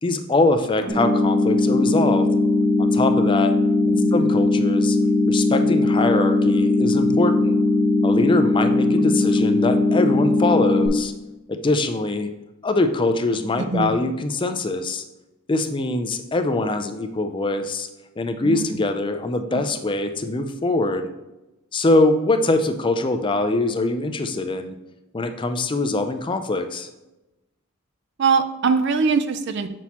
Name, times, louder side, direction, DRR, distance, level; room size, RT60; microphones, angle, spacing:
voice 1, 0.0-2.3 2.8-3.5 3.9-5.0 5.3-7.6 8.0-11.1 11.5-12.3 12.6-15.0 15.5-17.9 18.2-21.1 21.7-24.7 25.1-26.9, left 2 dB, 20° left, 7 dB, 0.4 m, -23 dB
sound 1, 0.9-10.9, left 2 dB, 30° right, 2.0 m, -19 dB
voice 2, 3.9-4.4 9.0-9.3 13.6-14.0 18.4-18.8 19.5-19.6 28.2-29.7, right 5 dB, 55° right, 10 dB, 0.4 m, -23 dB
7.0 x 6.1 x 2.9 m, 0.98 s
head